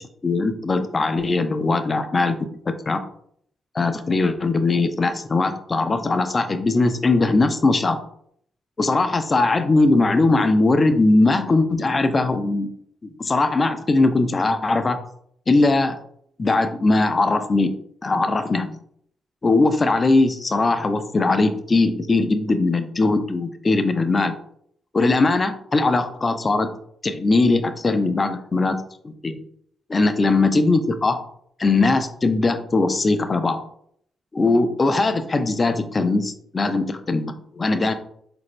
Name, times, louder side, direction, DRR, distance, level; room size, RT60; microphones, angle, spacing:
voice 1, 0.2-2.4 2.9-3.0 3.7-8.0 8.8-12.7 13.0-15.0 15.5-16.0 16.4-17.7 18.0-18.8 19.4-24.3 24.9-26.7 27.0-28.7 29.0-29.4 29.9-31.2 31.6-33.6 34.3-37.9, left 3 dB, 40° left, 9 dB, 0.5 m, -20 dB
4.1 x 2.6 x 3.1 m, 0.66 s
hypercardioid pair, 45°, 0 cm